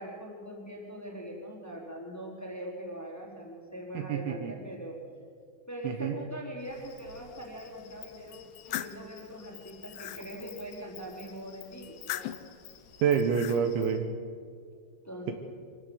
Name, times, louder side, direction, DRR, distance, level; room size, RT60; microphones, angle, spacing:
voice 1, 0.0-5.0 5.7-12.2 15.0-15.3, equal, 5° left, -3 dB, 3.2 m, -42 dB
voice 2, 3.9-4.6 5.8-6.1 13.0-14.1, right 7 dB, 75° right, 6 dB, 3.4 m, -27 dB
Insect, 6.6-14.0, left 8 dB, 65° left, 3.5 m, -52 dB
sound 1, 8.3-9.0 9.6-10.2 11.8-12.5 13.1-13.6, left 14 dB, 85° left, 2.2 m, -39 dB
25.0 x 16.5 x 8.1 m, 2.2 s
omnidirectional pair, 5.6 m